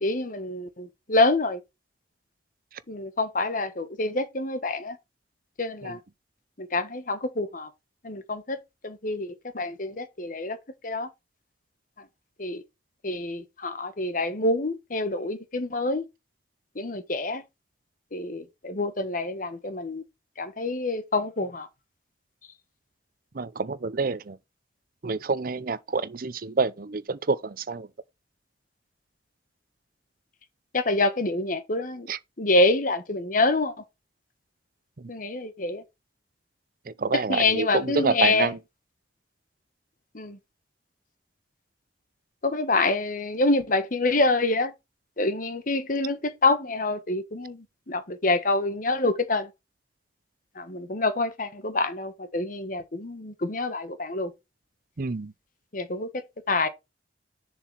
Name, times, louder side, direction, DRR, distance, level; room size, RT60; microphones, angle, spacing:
voice 1, 0.0-1.6 2.9-5.0 5.6-6.0 6.6-7.7 8.0-10.6 10.8-11.1 12.4-12.6 13.0-16.1 16.7-17.4 18.1-20.0 20.4-21.7 30.7-32.1 32.4-33.7 35.1-35.8 37.1-38.5 40.1-40.4 42.4-44.7 45.2-49.5 50.5-54.3 55.7-56.7, left 2 dB, 50° left, 1.2 m, -26 dB
voice 2, 23.3-24.4 25.0-27.9 32.1-32.2 35.0-35.1 36.9-38.6 55.0-55.3, right 4 dB, 55° right, 0.7 m, -28 dB
7.1 x 4.5 x 5.9 m
head